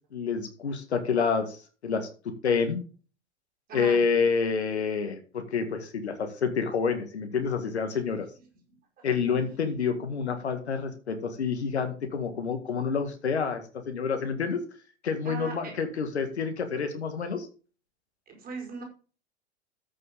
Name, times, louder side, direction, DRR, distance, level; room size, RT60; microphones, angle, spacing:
voice 1, 0.1-2.8 3.7-8.3 9.0-14.6 15.0-17.5, left 5 dB, 70° left, 7 dB, 2.0 m, -28 dB
voice 2, 3.7-4.0 15.2-15.7 18.3-18.8, right 4 dB, 25° right, 0 dB, 5.0 m, -38 dB
14.0 x 6.6 x 3.7 m, 0.36 s
figure-of-eight pair, 95°, 34 cm